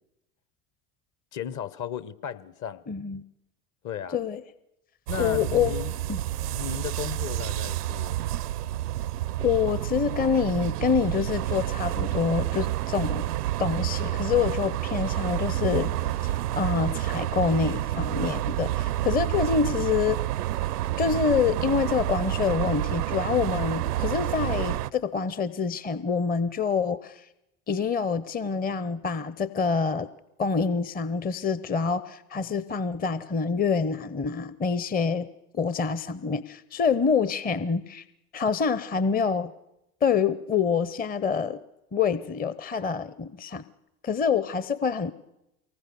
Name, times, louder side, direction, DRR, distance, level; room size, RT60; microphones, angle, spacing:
voice 1, 1.3-2.8 3.8-4.2 5.1-6.0 6.5-8.2, left 8 dB, 40° left, 1.1 m, -35 dB
voice 2, 2.9-3.2 4.1-4.4 5.2-5.7 6.1-6.2 9.4-13.3 13.6-15.9 16.2-20.2 21.0-27.2 27.7-30.1 30.4-35.3 35.5-38.0 38.3-39.5 40.0-41.6 41.9-43.6 44.0-45.1, left 6 dB, 20° left, 0.8 m, -26 dB
sound 1, 5.1-24.9, right 14 dB, 85° right, 0.7 m, -29 dB
23.5 x 19.5 x 6.9 m
hypercardioid pair, 75°, 46 cm